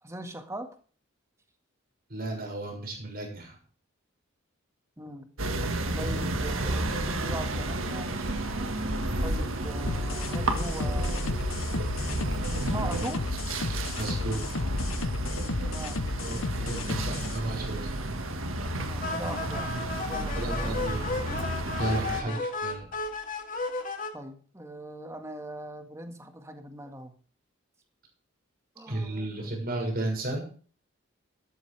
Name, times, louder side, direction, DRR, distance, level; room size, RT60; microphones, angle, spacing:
voice 1, 0.0-0.7 5.0-5.3 6.0-8.7 9.2-11.4 12.4-13.3 15.6-16.0 18.8-20.9 22.1-22.5 24.1-27.1 28.8-29.6, right 1 dB, 15° right, 6 dB, 1.8 m, -40 dB
voice 2, 2.1-3.6 13.9-14.6 16.2-17.9 20.4-21.1 21.8-22.8 28.9-30.5, right 2 dB, 45° right, 1 dB, 6.4 m, -33 dB
sound 1, 5.4-22.2, right 1 dB, 75° right, 1.7 m, -31 dB
sound 2, 9.9-17.4, left 3 dB, 75° left, 0.8 m, -34 dB
sound 3, 19.0-24.1, left 3 dB, 40° left, 2.1 m, -34 dB
13.5 x 13.0 x 3.4 m, 0.42 s
head